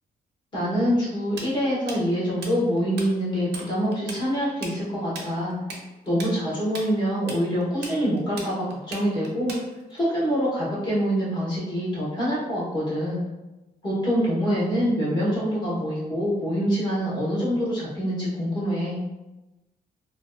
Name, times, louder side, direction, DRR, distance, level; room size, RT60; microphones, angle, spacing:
voice 1, 0.5-5.5 6.0-9.5 9.9-13.2 13.8-19.0, equal, 25° left, -7 dB, 1.0 m, -25 dB
Tools, 1.4-3.1 3.4-3.7 3.9-10.0, right 3 dB, 85° right, 0.5 m, -37 dB
2.6 x 2.2 x 2.2 m, 1.0 s
wide cardioid pair, 170°, 17 cm